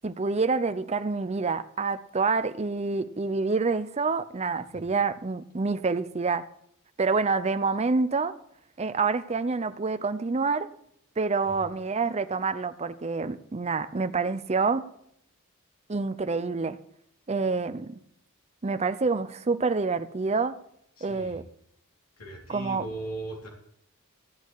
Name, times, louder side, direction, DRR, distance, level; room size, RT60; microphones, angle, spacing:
voice 1, 0.0-6.5 7.0-8.3 8.8-10.7 11.2-14.9 15.9-16.8 17.3-17.9 18.6-20.6 21.0-21.4 22.5-22.8, right 4 dB, 30° right, 0.6 m, -27 dB
voice 2, 21.0-21.4 22.2-23.5, right 2 dB, 80° left, 3.1 m, -38 dB
14.5 x 8.2 x 4.8 m
head